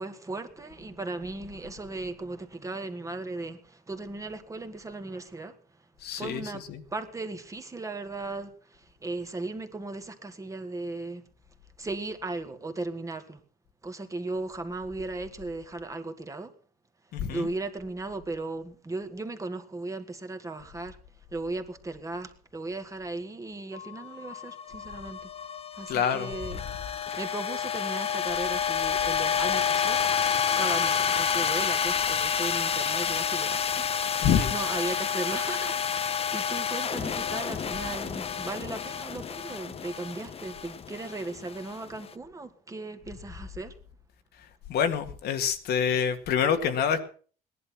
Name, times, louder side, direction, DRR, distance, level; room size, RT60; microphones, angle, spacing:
voice 1, 0.0-5.6 6.2-11.2 11.8-13.4 13.8-16.5 17.3-21.0 21.3-25.3 25.7-26.6 27.2-30.0 30.6-43.7, right 2 dB, 20° right, 1.9 m, -37 dB
voice 2, 6.0-6.8 17.1-17.5 25.9-26.3 34.2-34.6 44.7-47.0, left 8 dB, 70° left, 1.9 m, -26 dB
sound 1, 23.7-42.0, left 7 dB, 35° left, 0.9 m, -29 dB
17.5 x 11.0 x 6.0 m
cardioid pair, 110°, 17 cm